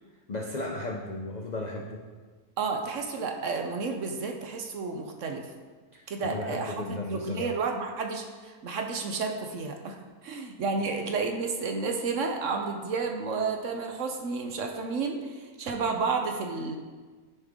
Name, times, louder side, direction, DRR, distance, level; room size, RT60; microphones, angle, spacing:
voice 1, 0.3-2.0 5.9-7.6, left 2 dB, 65° left, 0 dB, 0.4 m, -35 dB
voice 2, 2.6-5.5 6.1-6.8 7.1-9.9 10.2-16.8, right 4 dB, 60° right, 4 dB, 1.0 m, -31 dB
9.7 x 5.2 x 3.6 m, 1.4 s
omnidirectional pair, 1.6 m